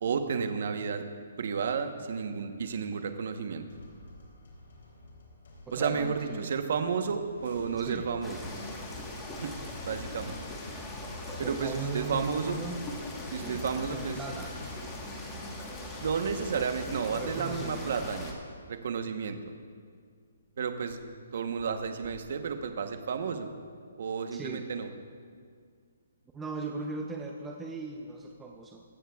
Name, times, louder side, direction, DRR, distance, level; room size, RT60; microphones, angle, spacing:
voice 1, 0.0-1.0 1.4-3.6 5.7-8.4 9.4-9.5 9.9-10.4 11.4-12.6 13.3-14.2 16.0-18.3 18.7-19.5 20.6-21.0 21.3-23.5 24.0-24.9, right 6 dB, 55° right, 7 dB, 0.9 m, -32 dB
sound 1, 3.7-15.1, left 1 dB, 70° left, 3.3 m, -50 dB
voice 2, 5.7-6.5 7.8-8.1 11.3-12.8 13.3-14.5 17.1-18.1 24.3-24.7 26.3-28.8, right 3 dB, 10° right, 1 dB, 0.5 m, -39 dB
sound 2, 8.2-18.3, left 1 dB, 10° left, 1.2 m, -40 dB
15.5 x 14.0 x 2.3 m, 2.1 s
hypercardioid pair, 170°, 0 cm